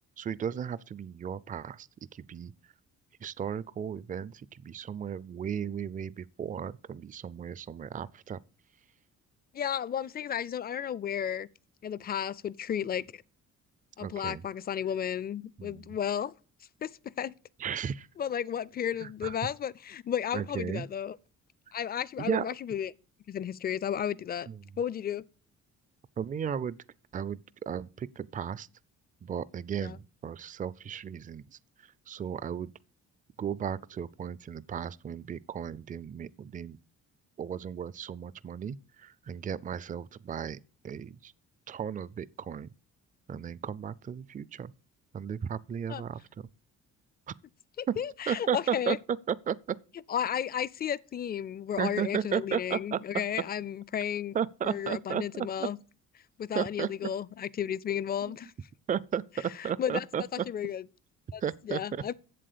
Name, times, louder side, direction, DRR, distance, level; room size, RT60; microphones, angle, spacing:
voice 1, 0.2-2.5 3.2-8.4 14.0-14.4 15.6-15.9 17.6-18.1 19.0-19.3 20.3-20.9 22.2-22.5 24.5-24.6 26.2-26.8 27.1-27.4 27.7-28.7 29.2-31.6 32.1-32.7 33.4-36.8 37.4-40.6 40.8-41.3 41.7-42.7 43.3-44.7 45.1-46.5 47.3-47.4 47.9-48.0 48.3-49.8 51.8-53.0 54.3-55.7 56.5-56.9 58.9-59.2 59.6-60.4 61.4-61.8, right 8 dB, 25° right, 0.4 m, -34 dB
voice 2, 9.5-11.5 11.8-13.2 14.0-16.3 16.8-17.3 18.2-21.2 21.7-22.9 23.3-24.5 24.8-25.2 29.8-30.0 45.9-46.0 47.8-49.0 50.1-54.3 54.6-55.8 56.4-58.5 59.6-60.1 60.3-60.8 61.3-62.1, left 9 dB, 30° left, 0.4 m, -33 dB
7.6 x 7.6 x 6.8 m
cardioid pair, 90°, 30 cm